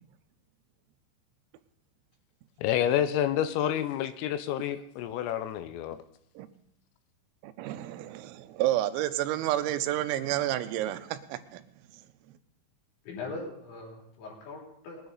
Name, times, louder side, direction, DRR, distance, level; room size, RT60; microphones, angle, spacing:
voice 1, 2.6-6.0, left 10 dB, 85° left, 11 dB, 3.4 m, -28 dB
voice 2, 7.4-11.6, right 13 dB, 90° right, 10 dB, 3.5 m, -30 dB
voice 3, 13.0-15.1, left 3 dB, 65° left, -2 dB, 5.4 m, -41 dB
21.0 x 9.7 x 4.0 m, 0.69 s
omnidirectional pair, 5.9 m